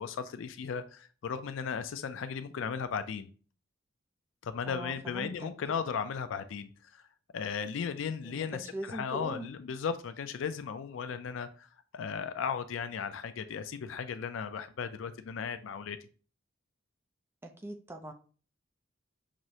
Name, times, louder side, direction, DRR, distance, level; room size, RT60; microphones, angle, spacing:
voice 1, 0.0-3.3 4.4-7.0 7.3-11.7 11.9-16.0, left 6 dB, 75° left, 0.4 m, -36 dB
voice 2, 4.7-5.5 8.2-9.5 17.4-18.1, right 1 dB, 10° right, 0.4 m, -41 dB
6.0 x 2.0 x 2.7 m
head